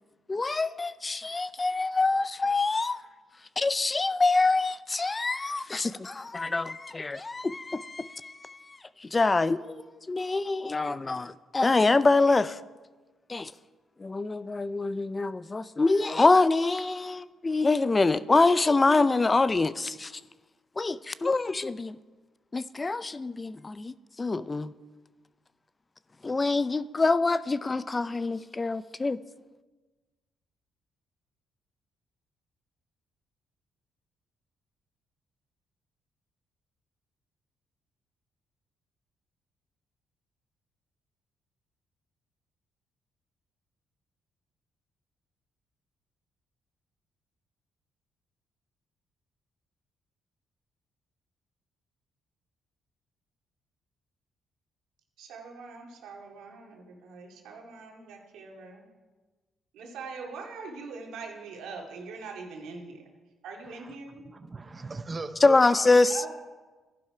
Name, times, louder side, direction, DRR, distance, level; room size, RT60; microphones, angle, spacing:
voice 1, 0.3-3.0 3.6-8.6 9.1-12.6 13.3-13.5 14.0-20.1 20.8-22.0 22.5-23.9 24.2-24.7 26.2-29.2 65.4-66.2, left 3 dB, 25° left, 0.4 m, -25 dB
voice 2, 55.2-58.9 59.7-63.1 63.4-64.3 66.1-66.3, right 4 dB, 85° right, 2.3 m, -42 dB
voice 3, 64.3-65.9, right 3 dB, 25° right, 0.7 m, -39 dB
12.0 x 11.0 x 4.9 m
cardioid pair, 90°, 0 cm